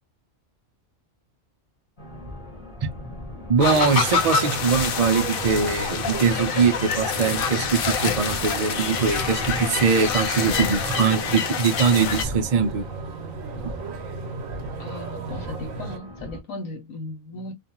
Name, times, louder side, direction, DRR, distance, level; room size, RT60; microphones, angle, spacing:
sound 1, 2.0-16.4, left 1 dB, 25° left, 1.0 m, -38 dB
voice 1, 3.5-12.9, right 6 dB, 55° right, 0.4 m, -22 dB
sound 2, 3.6-12.2, left 7 dB, 55° left, 0.6 m, -26 dB
sound 3, 3.6-16.0, right 4 dB, 85° right, 1.1 m, -35 dB
voice 2, 14.8-17.5, left 2 dB, 90° left, 1.2 m, -36 dB
2.6 x 2.4 x 2.8 m
omnidirectional pair, 1.4 m